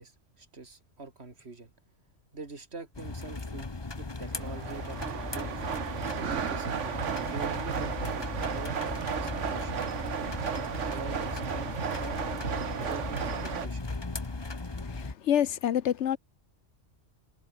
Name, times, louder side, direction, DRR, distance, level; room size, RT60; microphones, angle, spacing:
voice 1, 0.0-1.7 2.3-3.7 4.0-5.7 6.2-10.0 10.9-11.7 12.0-13.9, right 3 dB, 60° right, 2.8 m, -44 dB
sound 1, 2.9-15.1, left 3 dB, 20° left, 1.2 m, -37 dB
sound 2, 4.3-13.7, right 7 dB, 85° right, 1.5 m, -34 dB
voice 2, 14.8-16.2, left 10 dB, 75° left, 1.1 m, -28 dB
omnidirectional pair, 1.2 m